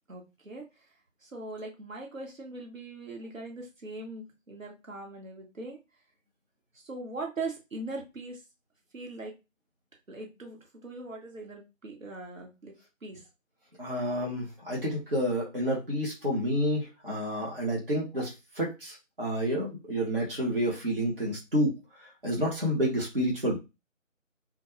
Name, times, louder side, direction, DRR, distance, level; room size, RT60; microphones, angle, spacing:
voice 1, 0.1-0.6 1.2-5.8 6.8-8.4 8.9-9.3 10.1-12.7 13.0-13.2, right 2 dB, 70° right, 1 dB, 1.0 m, -40 dB
voice 2, 13.8-23.6, equal, 45° right, -3 dB, 0.9 m, -29 dB
2.2 x 2.2 x 2.9 m, 0.25 s
figure-of-eight pair, 165°, 40 cm